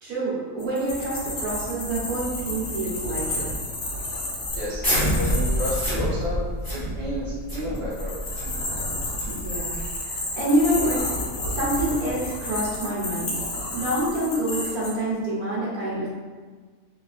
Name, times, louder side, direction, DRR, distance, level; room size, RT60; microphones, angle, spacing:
voice 1, 0.0-3.5 9.2-9.8 10.4-11.1 11.5-13.4 13.7-16.1, right 1 dB, 80° right, -8 dB, 1.7 m, -26 dB
sound 1, 0.6-5.9 7.7-14.9, left 1 dB, 70° left, 1.4 m, -31 dB
sound 2, 4.5-9.9, equal, 15° left, 1.3 m, -28 dB
voice 2, 4.5-6.4 6.7-8.2, left 1 dB, 25° right, -9 dB, 1.0 m, -31 dB
3.6 x 3.3 x 2.4 m, 1.4 s
omnidirectional pair, 1.5 m